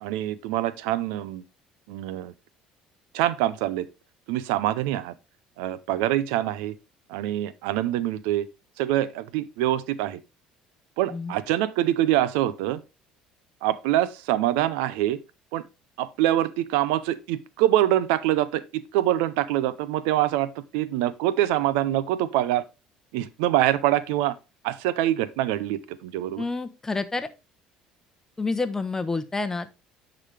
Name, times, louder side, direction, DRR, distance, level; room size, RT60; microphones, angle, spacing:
voice 1, 0.0-1.4 1.9-2.3 3.1-3.9 4.3-5.1 5.6-6.7 7.1-8.5 8.8-10.2 11.0-12.8 13.6-15.2 15.5-15.6 16.0-22.6 23.1-24.4 24.6-26.4, right 13 dB, 85° right, 0.5 m, -25 dB
voice 2, 26.4-27.3 28.4-29.7, left 3 dB, 15° left, 0.9 m, -28 dB
9.9 x 3.9 x 3.3 m
supercardioid pair, 95°, 3 cm